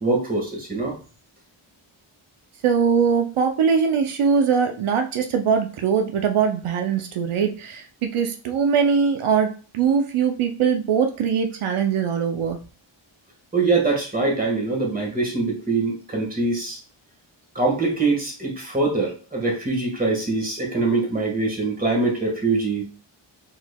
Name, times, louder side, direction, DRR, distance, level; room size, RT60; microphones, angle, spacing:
voice 1, 0.0-1.0 13.5-16.8 17.5-22.8, right 3 dB, 20° right, -1 dB, 1.6 m, -23 dB
voice 2, 2.6-12.6, right 6 dB, 80° right, 5 dB, 0.7 m, -21 dB
4.5 x 4.0 x 2.3 m, 0.37 s
wide cardioid pair, 105°, 49 cm